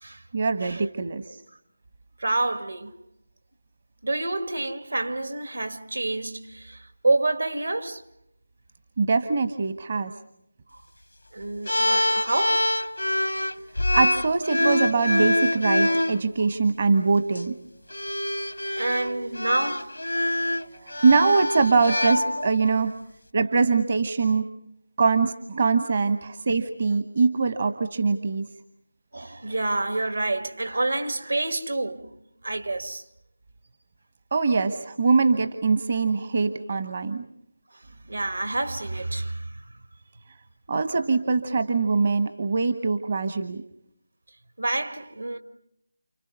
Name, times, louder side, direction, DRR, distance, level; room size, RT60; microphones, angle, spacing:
voice 1, 0.3-1.4 9.0-10.1 13.9-17.6 20.3-22.9 23.3-24.4 25.0-28.5 34.3-37.2 40.7-43.6, right 4 dB, 45° right, 1.2 m, -23 dB
voice 2, 2.2-2.9 4.0-8.1 11.3-12.7 18.7-20.3 25.7-25.9 29.1-32.1 32.4-33.0 37.9-39.6 44.6-45.4, right 2 dB, 75° right, 2.4 m, -28 dB
sound 1, 11.7-16.2 17.2-17.4 17.9-22.7, left 1 dB, 85° left, 1.1 m, -25 dB
29.5 x 29.5 x 5.4 m
figure-of-eight pair, 160°, 0 cm